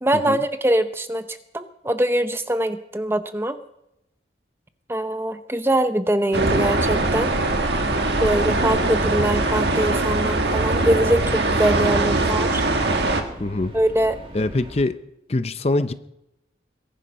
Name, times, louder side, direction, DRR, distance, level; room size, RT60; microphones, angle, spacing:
voice 1, 0.0-3.6 4.9-7.3 8.2-12.6 13.7-14.2, right 1 dB, 10° right, 10 dB, 0.7 m, -23 dB
sound 1, 6.3-13.2, right 2 dB, 65° right, 1.5 m, -21 dB
sound 2, 6.5-14.9, right 1 dB, 30° right, 1.8 m, -39 dB
voice 2, 13.4-13.7 14.3-14.9 15.3-15.9, left 2 dB, 35° left, 12 dB, 0.6 m, -23 dB
22.5 x 10.0 x 5.5 m, 0.85 s
head